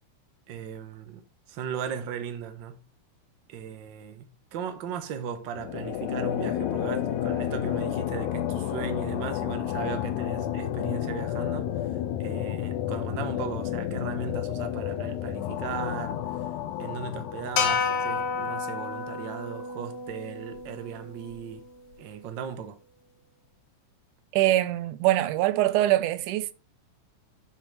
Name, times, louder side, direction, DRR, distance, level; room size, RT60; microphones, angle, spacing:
voice 1, 0.5-2.9 3.5-16.4 16.8-21.6 22.0-22.8, right 7 dB, 60° right, 1.3 m, -37 dB
sound 1, 5.5-18.7, left 11 dB, 85° left, 2.1 m, -31 dB
sound 2, 17.6-21.9, left 5 dB, 65° left, 2.5 m, -31 dB
voice 2, 24.3-26.5, right 15 dB, 90° right, 2.2 m, -23 dB
12.0 x 5.8 x 3.2 m
omnidirectional pair, 3.5 m